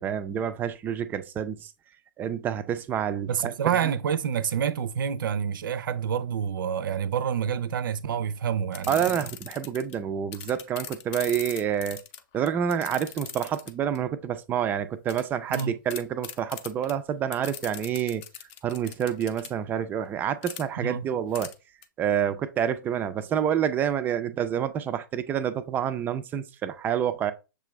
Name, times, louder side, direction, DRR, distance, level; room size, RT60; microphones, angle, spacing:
voice 1, 0.0-1.7 2.2-3.5 3.8-3.9 8.9-12.0 12.3-18.2 18.6-21.5 22.0-27.3, right 9 dB, 15° right, 0.3 m, -28 dB
voice 2, 3.3-9.2 15.5-15.7 20.8-21.1, right 8 dB, 65° right, 0.5 m, -28 dB
sound 1, 8.7-9.9 10.3-14.0 15.1-15.2 15.5-15.6 15.9-16.9 17.3-19.5 20.4-20.6 21.3-21.5 21.8-21.9, left 9 dB, 35° left, 0.6 m, -39 dB
6.6 x 2.4 x 3.1 m
hypercardioid pair, 135°, 12 cm